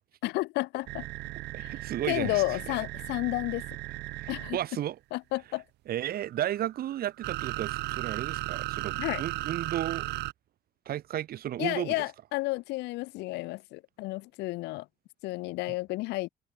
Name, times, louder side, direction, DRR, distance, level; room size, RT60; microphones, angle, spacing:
voice 1, 0.2-1.0 1.6-1.7 2.1-3.6 4.3-4.6 5.1-5.6 9.0-9.2 11.6-14.9 15.2-16.3, left 20 dB, 90° left, 1.1 m, -31 dB
sound 1, 0.9-4.6 6.1-10.3, right 18 dB, 85° right, 2.0 m, -36 dB
voice 2, 1.5-2.6 4.2-5.0 5.9-10.1 10.9-12.0 15.7-15.8, right 12 dB, 65° right, 3.8 m, -34 dB
cardioid pair, 110°, 17 cm